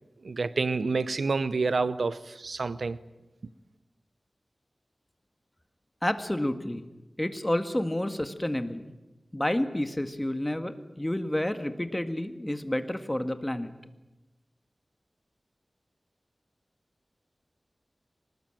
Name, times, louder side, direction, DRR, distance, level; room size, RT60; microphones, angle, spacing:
voice 1, 0.2-3.0, right 4 dB, 85° right, 0.8 m, -28 dB
voice 2, 6.0-6.8 7.2-8.8 9.3-13.7, left 1 dB, 15° left, 1.9 m, -30 dB
24.5 x 20.0 x 9.0 m
wide cardioid pair, 65°, 0 cm